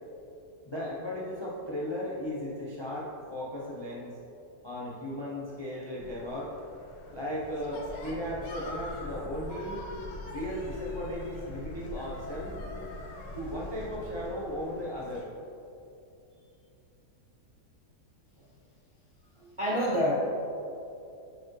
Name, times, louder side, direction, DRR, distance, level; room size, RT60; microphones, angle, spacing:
voice 1, 0.7-4.2 4.6-6.5 7.1-9.9 10.3-12.5 13.3-15.3, left 1 dB, 40° left, -6 dB, 0.4 m, -36 dB
sound 1, 6.0-15.3, left 1 dB, 90° left, 1.5 m, -42 dB
voice 2, 19.4-20.2, equal, 40° right, -6 dB, 0.4 m, -28 dB
9.1 x 4.5 x 3.2 m, 2.7 s
omnidirectional pair, 1.8 m